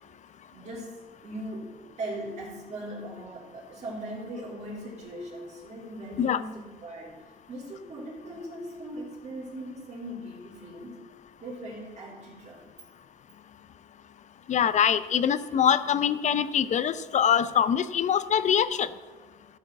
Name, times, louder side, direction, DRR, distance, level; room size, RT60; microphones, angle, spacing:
voice 1, 0.5-11.0 11.4-12.6, right 1 dB, 40° right, -8 dB, 3.3 m, -39 dB
voice 2, 14.5-18.9, left 8 dB, 45° left, 14 dB, 0.6 m, -24 dB
14.0 x 5.0 x 7.7 m, 1.3 s
cardioid pair, 110°, 17 cm